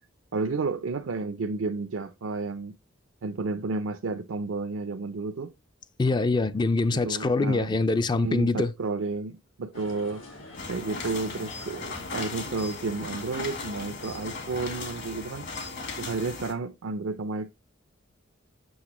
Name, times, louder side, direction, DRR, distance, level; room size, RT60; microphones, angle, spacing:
voice 1, 0.3-2.7 3.2-5.5 6.9-7.8 8.1-10.4 10.7-15.5 16.0-17.5, right 3 dB, 80° right, 0.5 m, -32 dB
voice 2, 6.0-8.7, left 3 dB, 20° left, 0.3 m, -24 dB
sound 1, 9.7-14.9, left 2 dB, 85° left, 2.4 m, -46 dB
sound 2, 10.6-16.5, left 4 dB, 60° left, 1.8 m, -37 dB
7.9 x 6.0 x 2.9 m
head